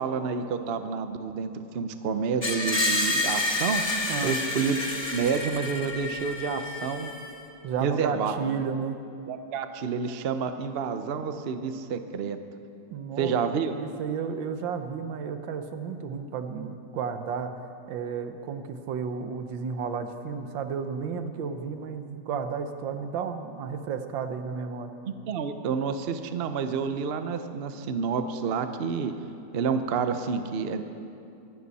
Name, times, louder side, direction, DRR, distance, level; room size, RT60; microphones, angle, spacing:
voice 1, 0.0-3.8 4.2-4.8 5.1-7.1 7.8-8.4 9.3-12.4 13.2-13.8 25.1-29.1 29.5-30.8, right 6 dB, 60° right, 9 dB, 0.6 m, -29 dB
Screech, 2.4-7.4, left 2 dB, 20° left, 0.8 m, -29 dB
voice 2, 4.1-4.4 7.6-9.0 12.9-17.5 17.9-24.9, right 6 dB, 90° right, 8 dB, 1.6 m, -32 dB
23.0 x 11.5 x 4.2 m, 2.6 s
omnidirectional pair, 2.0 m